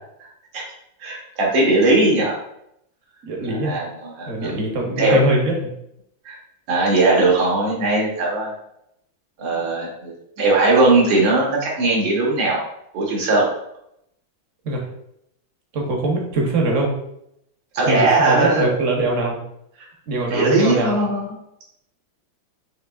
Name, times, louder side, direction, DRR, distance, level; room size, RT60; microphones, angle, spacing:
voice 1, 1.0-2.4 3.5-4.6 5.0-5.2 6.3-6.4 6.7-8.5 9.4-12.6 12.9-13.5 17.7-18.7 20.3-21.3, right 2 dB, 85° right, -2 dB, 2.0 m, -19 dB
voice 2, 3.2-3.7 4.3-5.7 14.6-14.9 15.7-16.9 17.8-19.4 20.1-21.0, right 2 dB, 50° right, 0 dB, 1.0 m, -22 dB
5.7 x 3.2 x 2.3 m, 0.77 s
omnidirectional pair, 2.2 m